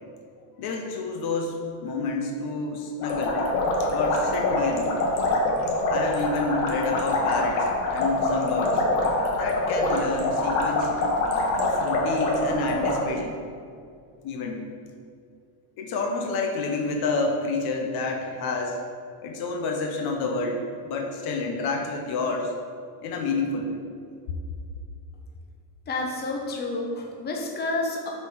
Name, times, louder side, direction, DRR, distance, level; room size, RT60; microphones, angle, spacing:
voice 1, 0.6-3.4 3.8-4.9 5.9-8.8 9.4-10.9 11.6-13.4 14.2-14.6 15.8-18.8 19.2-22.5 23.0-23.8, left 3 dB, 50° left, 2 dB, 1.0 m, -29 dB
sound 1, 3.0-13.0, left 2 dB, 85° left, 1.7 m, -25 dB
voice 2, 25.9-28.1, left 2 dB, 20° left, 0 dB, 1.0 m, -29 dB
6.2 x 5.3 x 5.0 m, 2.3 s
supercardioid pair, 135°, 48 cm